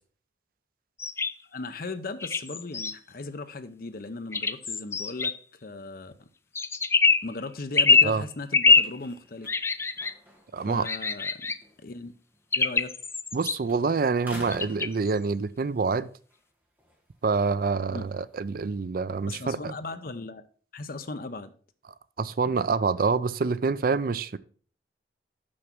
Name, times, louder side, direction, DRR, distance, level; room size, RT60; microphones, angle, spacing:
sound 1, 1.0-1.3 2.2-2.9 4.3-5.3 6.6-7.3 7.8-8.1 8.5-8.9 9.5-10.1 10.8-11.6 12.5-13.6 14.5-15.1, left 4 dB, 15° left, 0.3 m, -23 dB
voice 1, 1.5-5.3 5.6-6.3 7.2-9.5 10.7-11.5 11.8-12.1 12.5-12.9 17.8-18.1 19.3-20.4 20.7-21.5, left 3 dB, 55° left, 0.7 m, -37 dB
sound 2, 7.7-13.4 13.6-15.7 16.1-19.2, equal, 10° right, 1.8 m, -50 dB
voice 2, 10.5-10.9 13.3-16.1 17.2-19.7 22.2-24.4, right 4 dB, 55° right, 0.4 m, -26 dB
6.4 x 6.0 x 5.9 m
head